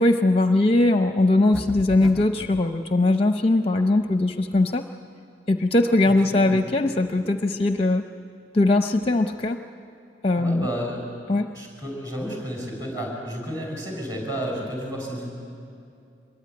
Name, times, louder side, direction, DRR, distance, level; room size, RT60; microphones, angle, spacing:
voice 1, 0.0-4.8 5.5-8.0 8.5-9.6 10.2-10.7 11.3-11.5, left 2 dB, 30° left, 7 dB, 0.6 m, -20 dB
sound 1, 1.5-2.6, left 1 dB, ahead, 1.1 m, -35 dB
voice 2, 10.4-11.0 11.5-15.3, equal, 20° right, 0 dB, 6.2 m, -31 dB
24.5 x 22.0 x 9.5 m, 2.5 s
head